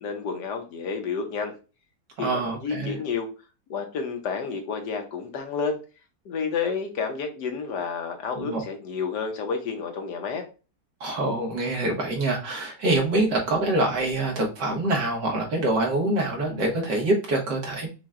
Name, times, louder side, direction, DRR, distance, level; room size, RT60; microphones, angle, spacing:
voice 1, 0.0-1.5 2.2-3.3 3.7-5.8 6.2-10.4, left 5 dB, 75° left, 4 dB, 1.6 m, -30 dB
voice 2, 2.2-3.0 8.4-8.6 11.0-17.9, right 2 dB, 80° right, 0 dB, 2.0 m, -25 dB
5.9 x 2.3 x 3.7 m, 0.32 s
omnidirectional pair, 1.8 m